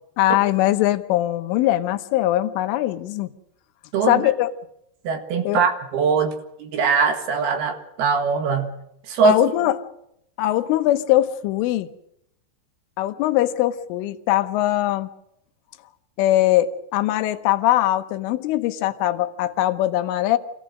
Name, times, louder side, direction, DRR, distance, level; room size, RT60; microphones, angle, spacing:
voice 1, 0.2-3.3 4.1-4.5 5.5-5.6 9.2-9.8 10.4-11.9 13.0-15.1 16.2-20.4, left 14 dB, 90° left, 10 dB, 3.5 m, -21 dB
voice 2, 5.0-6.3 6.6-8.7 9.1-9.4, right 5 dB, 60° right, 6 dB, 3.3 m, -21 dB
26.5 x 16.5 x 6.3 m, 0.78 s
omnidirectional pair, 5.5 m